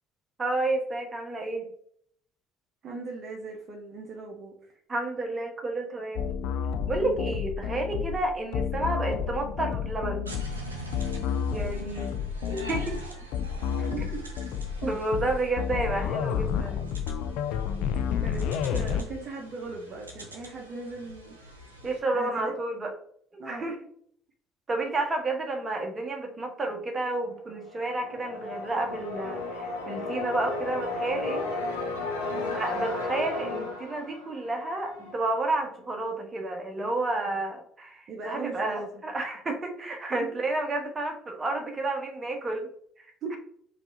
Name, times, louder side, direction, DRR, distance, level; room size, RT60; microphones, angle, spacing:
voice 1, 0.4-1.7 4.9-6.4 6.9-10.3 11.5-13.0 14.8-16.9 21.8-22.9 23.3-23.8 24.7-31.4 32.5-42.7, right 2 dB, 30° right, 3 dB, 1.1 m, -31 dB
voice 2, 2.8-4.8 13.8-14.2 18.2-18.4 18.7-21.6 22.1-22.5 23.4-23.7 32.3-32.6 38.1-39.0 39.7-39.8 40.2-40.3 43.2-43.3, right 3 dB, 45° right, 1 dB, 0.8 m, -38 dB
sound 1, 6.2-19.0, left 7 dB, 60° left, 0.4 m, -30 dB
sound 2, 10.3-22.0, equal, 85° right, 0.7 m, -44 dB
sound 3, 27.5-35.3, left 3 dB, 85° left, 1.0 m, -34 dB
4.6 x 2.6 x 3.8 m, 0.65 s
figure-of-eight pair, 55°, 0 cm